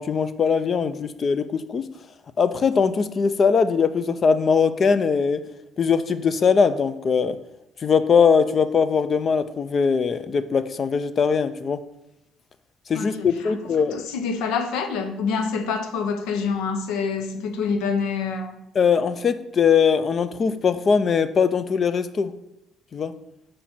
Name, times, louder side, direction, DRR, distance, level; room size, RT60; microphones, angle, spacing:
voice 1, 0.0-1.9 2.4-5.4 5.8-7.4 7.8-11.8 12.9-14.1 18.7-22.3 22.9-23.1, left 6 dB, 45° left, 13 dB, 0.5 m, -21 dB
voice 2, 12.9-13.5 13.9-18.5, left 5 dB, 90° left, 8 dB, 0.7 m, -26 dB
5.1 x 4.3 x 5.9 m, 0.87 s
cardioid pair, 90°, 0 cm